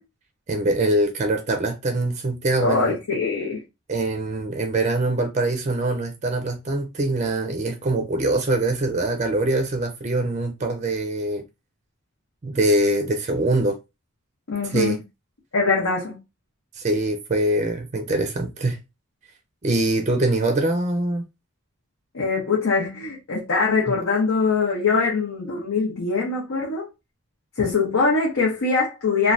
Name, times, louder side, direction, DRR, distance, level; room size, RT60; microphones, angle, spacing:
voice 1, 0.5-2.9 3.9-11.4 12.4-13.8 14.7-15.0 16.8-18.8 19.6-21.2 23.9-24.0, right 2 dB, 30° right, 0.4 m, -23 dB
voice 2, 2.6-3.6 14.5-15.0 15.5-16.2 22.1-26.9 27.6-29.3, left 4 dB, 75° left, 0.8 m, -22 dB
3.1 x 2.2 x 2.5 m
head